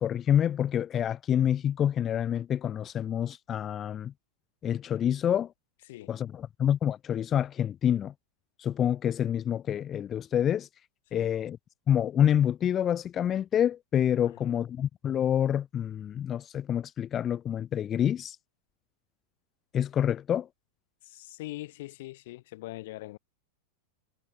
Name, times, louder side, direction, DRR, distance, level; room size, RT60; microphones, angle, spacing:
voice 1, 0.0-4.1 4.6-5.5 6.1-8.1 8.6-10.7 11.1-11.6 11.9-18.4 19.7-20.5, left 9 dB, 25° left, 2.4 m, -27 dB
voice 2, 21.0-23.2, left 18 dB, 50° left, 3.2 m, -42 dB
figure-of-eight pair, 90°, 0 cm